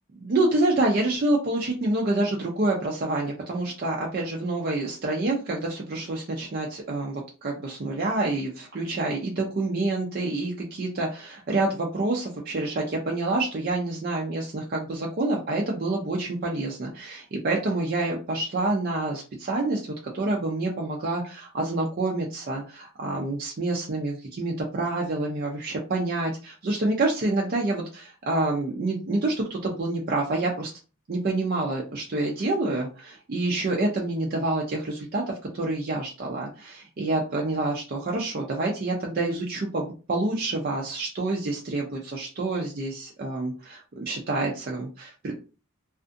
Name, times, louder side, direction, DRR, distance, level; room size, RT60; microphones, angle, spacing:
voice 1, 0.2-30.7 31.1-35.2 35.5-45.3, right 2 dB, 45° right, -1 dB, 0.4 m, -27 dB
2.4 x 2.4 x 2.5 m, 0.34 s
head